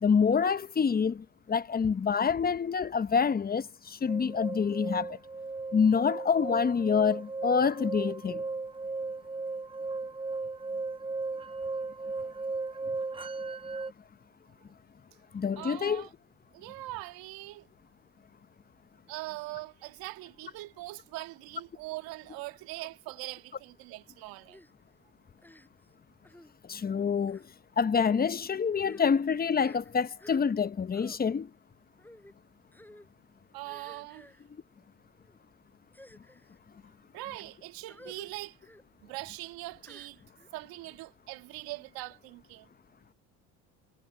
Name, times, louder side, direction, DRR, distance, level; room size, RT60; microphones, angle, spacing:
voice 1, 0.0-5.2 5.7-8.4 15.3-16.0 26.7-27.4 27.8-31.5, left 6 dB, 25° left, 1.0 m, -27 dB
sound 1, 4.1-13.9, right 3 dB, 15° right, 1.1 m, -36 dB
voice 2, 15.6-16.1 16.5-17.7 19.1-24.6 33.5-34.3 37.1-38.6 39.0-40.2 40.5-42.7, right 19 dB, 75° right, 1.9 m, -42 dB
sound 2, 24.5-24.7 25.4-25.9 26.2-26.5 27.2-27.5 28.2-28.3 28.7-30.7 30.9-31.2 32.0-32.3 32.7-33.1 33.6-34.4 35.1-35.4 35.9-36.6 37.2-37.4 37.9-38.3 38.6-38.8 39.8-40.5, left 1 dB, 5° left, 5.8 m, -54 dB
supercardioid pair, 80°, 37 cm